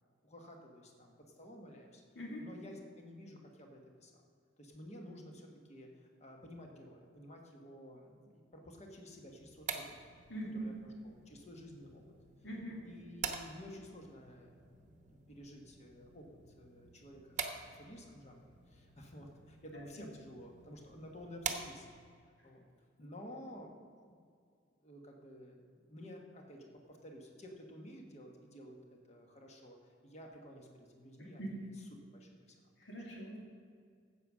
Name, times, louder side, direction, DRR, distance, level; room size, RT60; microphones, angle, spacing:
voice 1, 0.2-2.0 2.4-4.2 4.6-9.9 10.4-12.0 12.8-16.3 16.6-21.8 22.4-22.7 23.0-24.2 24.8-28.8 29.1-29.8 30.0-32.7, equal, 35° left, 1 dB, 1.4 m, -52 dB
sound 1, 9.3-22.2, right 6 dB, 40° right, 0.9 m, -47 dB
voice 2, 10.3-10.7 12.4-12.8 31.4-31.5 32.8-33.4, right 1 dB, 75° left, -3 dB, 2.4 m, -42 dB
9.2 x 7.8 x 6.2 m, 2.2 s
head